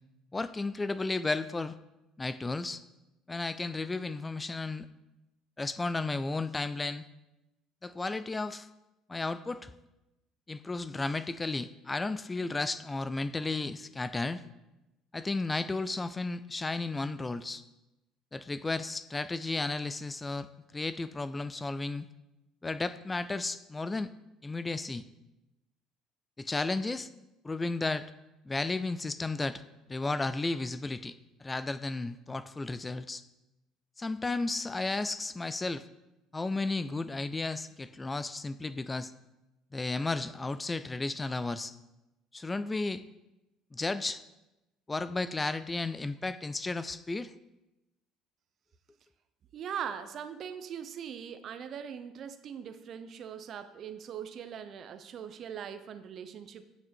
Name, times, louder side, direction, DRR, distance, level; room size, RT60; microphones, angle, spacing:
voice 1, 0.3-1.8 2.2-2.8 3.3-4.9 5.6-7.0 7.8-8.7 9.1-9.7 10.5-14.4 15.1-17.6 18.3-22.1 22.6-24.1 24.4-25.0 26.4-27.1 27.4-28.1 28.5-29.6 29.9-33.2 34.0-35.8 36.3-39.1 39.7-41.7 42.3-43.0 43.7-44.2 44.9-47.3, left 3 dB, 20° left, 15 dB, 0.4 m, -33 dB
voice 2, 49.5-56.6, right 8 dB, 50° right, 11 dB, 0.7 m, -41 dB
9.1 x 6.1 x 4.4 m, 0.97 s
supercardioid pair, 90°, 0 cm